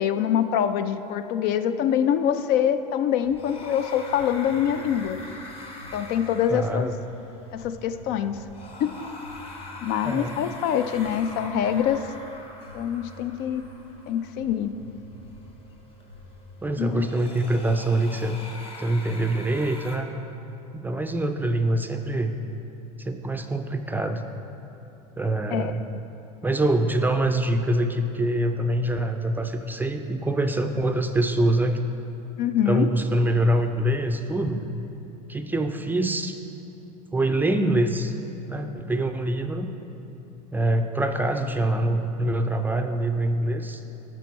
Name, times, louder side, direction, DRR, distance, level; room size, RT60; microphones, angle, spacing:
voice 1, 0.0-5.2 5.9-6.9 7.5-8.4 8.8-9.0 9.8-12.1 12.7-13.6 14.1-14.7 16.8-17.2 25.5-25.7 32.4-32.9, left 9 dB, 55° left, 11 dB, 0.4 m, -25 dB
sound 1, 3.2-16.9, equal, 90° left, 1.1 m, -48 dB
sound 2, 3.2-20.0, left 2 dB, 30° left, 1.1 m, -43 dB
voice 2, 6.5-6.9 10.0-10.3 16.6-18.4 18.8-20.1 20.7-22.4 23.0-24.2 25.2-25.9 26.4-31.8 32.7-34.7 35.3-36.3 37.1-38.1 38.5-39.7 40.5-43.8, right 1 dB, 10° right, 6 dB, 0.4 m, -24 dB
11.5 x 4.5 x 4.1 m, 2.9 s
hypercardioid pair, 95°, 20 cm